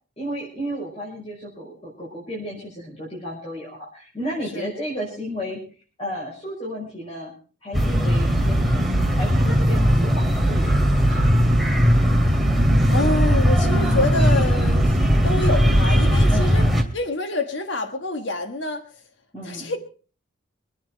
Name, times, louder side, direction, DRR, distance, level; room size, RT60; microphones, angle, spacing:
voice 1, 0.2-5.6 6.0-7.3 7.6-11.2 16.3-16.9 19.3-19.7, equal, 30° left, -5 dB, 5.5 m, -33 dB
sound 1, 7.7-16.8, equal, ahead, 2.3 m, -18 dB
voice 2, 12.9-16.6 16.9-18.8 19.4-19.8, left 2 dB, 60° left, 7 dB, 1.4 m, -27 dB
25.0 x 9.4 x 4.5 m, 0.39 s
head